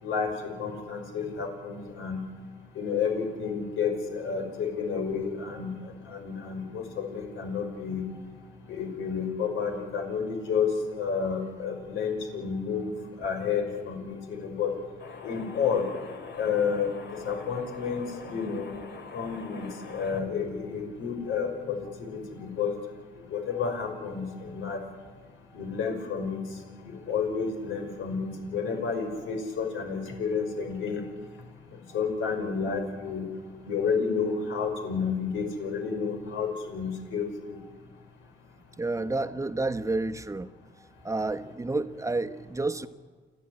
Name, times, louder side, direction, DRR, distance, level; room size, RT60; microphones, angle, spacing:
voice 1, 0.0-2.2 2.7-5.7 6.1-8.0 8.7-12.9 13.2-14.7 15.2-15.9 16.4-16.9 17.2-18.7 19.1-22.7 23.3-24.8 25.5-26.4 26.8-31.0 31.9-33.2 33.7-37.6, left 6 dB, 85° left, 3 dB, 5.9 m, -30 dB
sound 1, 15.0-20.2, left 5 dB, 60° left, 3.4 m, -44 dB
voice 2, 38.8-40.5 41.0-42.9, right 2 dB, 15° right, 9 dB, 1.1 m, -30 dB
29.5 x 12.0 x 9.8 m, 1.5 s
cardioid pair, 90°, 20 cm